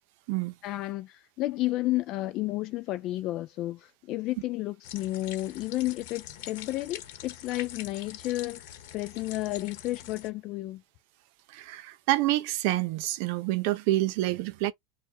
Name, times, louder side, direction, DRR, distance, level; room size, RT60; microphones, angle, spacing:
voice 1, 0.6-10.8, left 17 dB, 50° left, 0.3 m, -32 dB
sound 1, 4.8-10.3, left 11 dB, 70° left, 1.0 m, -44 dB
voice 2, 11.5-14.7, right 16 dB, 65° right, 0.6 m, -27 dB
4.5 x 2.3 x 3.3 m
supercardioid pair, 125°, 0 cm